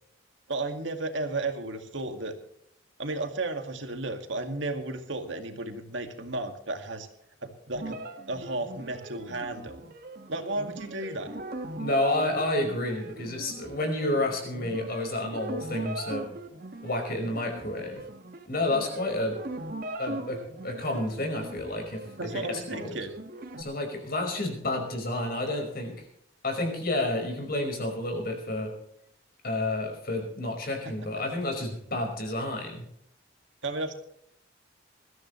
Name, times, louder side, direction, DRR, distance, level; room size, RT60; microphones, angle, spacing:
voice 1, 0.5-2.3 3.0-7.1 7.4-8.0 8.3-9.8 10.3-11.3 22.2-23.1 33.6-34.0, right 2 dB, 70° right, 6 dB, 2.1 m, -33 dB
sound 1, 7.8-23.6, right 2 dB, 50° right, 1.7 m, -41 dB
voice 2, 11.8-16.3 16.8-18.0 18.5-19.4 20.0-22.1 22.3-23.0 23.6-26.0 26.4-28.7 29.4-32.8, left 1 dB, 50° left, 3 dB, 5.2 m, -30 dB
21.5 x 14.0 x 3.2 m, 0.73 s
head